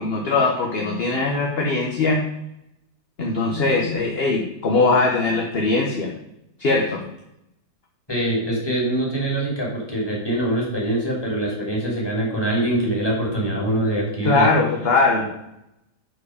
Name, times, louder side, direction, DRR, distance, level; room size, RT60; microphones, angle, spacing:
voice 1, 0.0-2.2 3.2-6.1 6.6-7.0 14.2-15.3, left 3 dB, 40° left, 0 dB, 1.1 m, -21 dB
voice 2, 8.1-14.5, right 1 dB, 15° left, -3 dB, 2.8 m, -23 dB
11.0 x 4.8 x 4.9 m, 0.85 s
omnidirectional pair, 1.8 m